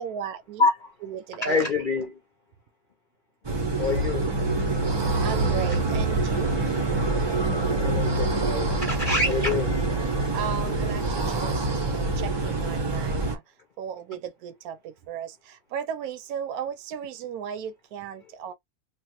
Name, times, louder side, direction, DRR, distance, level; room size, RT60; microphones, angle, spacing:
voice 1, 0.0-0.6 1.0-1.6 4.8-5.0 5.2-6.5 10.3-13.4 13.8-18.5, right 8 dB, 80° right, 1.1 m, -35 dB
voice 2, 1.4-2.1 3.8-4.3 7.8-9.8 10.6-10.7 11.1-11.2, left 3 dB, 50° left, 0.6 m, -26 dB
sound 1, 3.4-13.4, right 2 dB, 35° right, 0.4 m, -25 dB
3.2 x 2.2 x 2.9 m
omnidirectional pair, 1.6 m